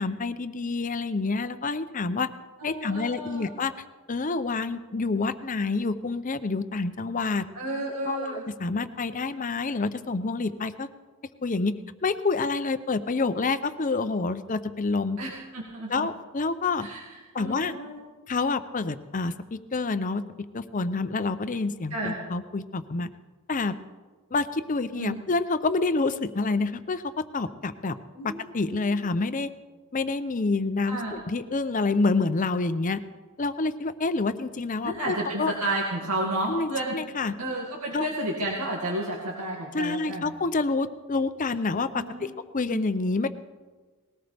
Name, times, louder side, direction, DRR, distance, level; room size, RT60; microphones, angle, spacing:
voice 1, 0.0-2.3 2.6-3.7 4.1-7.5 8.0-10.9 11.4-15.2 15.9-16.9 17.3-17.8 18.3-20.2 20.5-23.1 23.5-23.8 24.3-28.0 28.2-29.5 29.9-33.0 33.4-35.5 36.5-37.4 37.9-38.0 39.7-43.3, left 3 dB, 35° left, 11 dB, 0.6 m, -28 dB
voice 2, 2.6-3.5 7.5-8.4 15.2-16.1 16.8-18.0 21.9-22.1 25.0-25.2 28.1-29.1 30.9-31.1 34.8-37.0 37.4-40.3 41.9-42.3 42.7-42.8, right 1 dB, 85° right, -3 dB, 2.3 m, -32 dB
20.5 x 18.0 x 3.5 m, 1.3 s
head